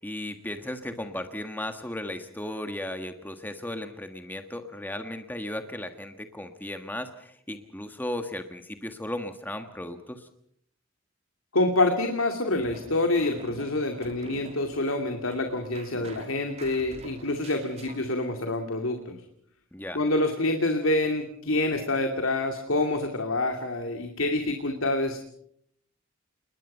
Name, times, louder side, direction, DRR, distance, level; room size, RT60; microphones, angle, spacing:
voice 1, 0.0-10.3 19.7-20.0, left 1 dB, 10° left, 7 dB, 1.4 m, -36 dB
voice 2, 11.5-19.2 19.9-25.2, left 2 dB, 85° left, 5 dB, 2.5 m, -27 dB
sound 1, 12.5-18.0, right 2 dB, 30° right, 3.2 m, -46 dB
29.0 x 21.0 x 5.6 m, 0.67 s
head